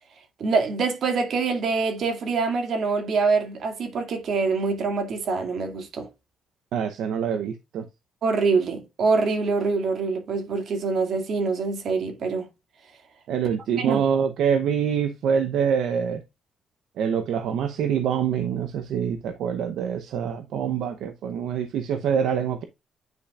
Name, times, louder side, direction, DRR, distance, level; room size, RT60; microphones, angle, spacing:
voice 1, 0.4-6.1 8.2-12.5 13.8-14.0, right 4 dB, 60° right, 2.1 m, -25 dB
voice 2, 6.7-7.9 13.3-16.2 17.0-22.6, right 7 dB, 80° right, 0.7 m, -25 dB
9.3 x 5.2 x 2.4 m
cardioid pair, 90°, 0 cm